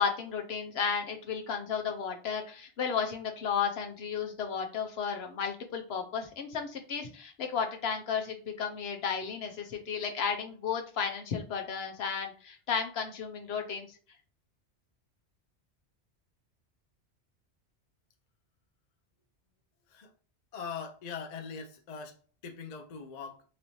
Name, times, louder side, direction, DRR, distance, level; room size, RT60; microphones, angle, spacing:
voice 1, 0.0-13.9, left 6 dB, 65° left, 1.0 m, -33 dB
voice 2, 20.5-23.4, left 6 dB, 50° left, 0.5 m, -41 dB
4.1 x 3.0 x 2.7 m
omnidirectional pair, 1.2 m